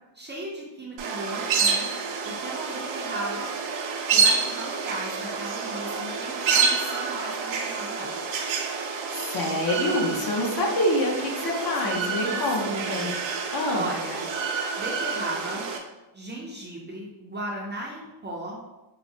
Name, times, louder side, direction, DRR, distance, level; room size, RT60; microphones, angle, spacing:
voice 1, 0.1-1.9 2.2-3.5 4.1-8.1 11.8-12.4 12.7-13.2 13.7-14.3 14.8-15.7 16.1-18.6, right 1 dB, 25° right, -3 dB, 0.4 m, -36 dB
sound 1, 1.0-15.8, right 5 dB, 75° right, 0.6 m, -28 dB
voice 2, 9.1-13.1 13.5-13.9, left 1 dB, 50° left, -1 dB, 0.7 m, -26 dB
4.7 x 2.0 x 2.6 m, 1.0 s
cardioid pair, 140°, 47 cm